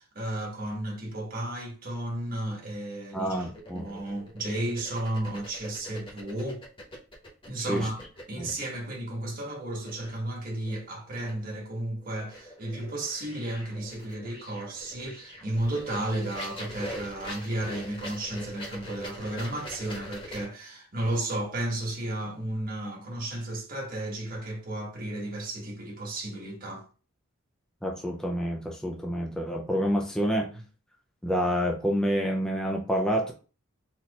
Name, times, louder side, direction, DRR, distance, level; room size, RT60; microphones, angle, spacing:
voice 1, 0.0-6.6 7.5-8.0 8.3-26.8 30.5-30.6, right 1 dB, 40° right, 1.5 m, -33 dB
voice 2, 3.1-3.9 7.7-7.9 8.4-8.5 27.8-30.5 31.2-33.3, equal, 5° left, 0.5 m, -28 dB
sound 1, 3.2-7.5 7.7-8.5 9.8-10.2 10.6-11.5 11.9-20.4, equal, 25° left, 1.3 m, -43 dB
4.2 x 3.0 x 4.0 m
head